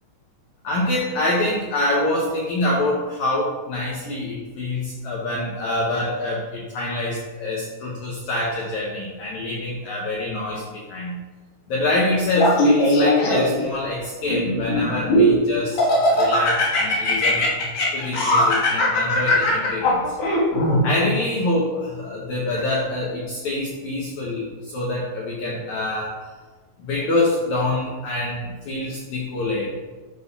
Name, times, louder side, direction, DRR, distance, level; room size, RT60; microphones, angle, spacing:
voice 1, 0.6-11.2 11.7-15.8 16.1-17.5 17.9-20.2 20.8-24.4 24.7-26.1 26.8-29.7, left 2 dB, 85° left, -4 dB, 1.6 m, -25 dB
Laughter, 12.3-13.7 14.3-15.3 15.8-20.8, left 1 dB, 70° left, 3.2 m, -19 dB
10.0 x 5.3 x 2.3 m, 1.3 s
omnidirectional pair, 4.6 m